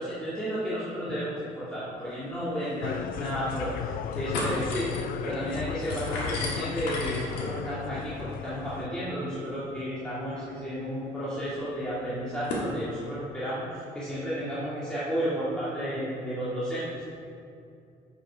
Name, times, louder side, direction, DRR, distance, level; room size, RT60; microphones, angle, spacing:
voice 1, 0.0-4.9 5.2-17.1, equal, 5° left, -11 dB, 1.9 m, -32 dB
sound 1, 2.3-2.4 2.7-2.8 3.3-3.8 4.1-12.7, left 1 dB, 85° left, 2.0 m, -38 dB
sound 2, 2.8-8.9, left 9 dB, 60° left, 0.4 m, -35 dB
8.6 x 5.5 x 4.9 m, 2.6 s
cardioid pair, 110°, 17 cm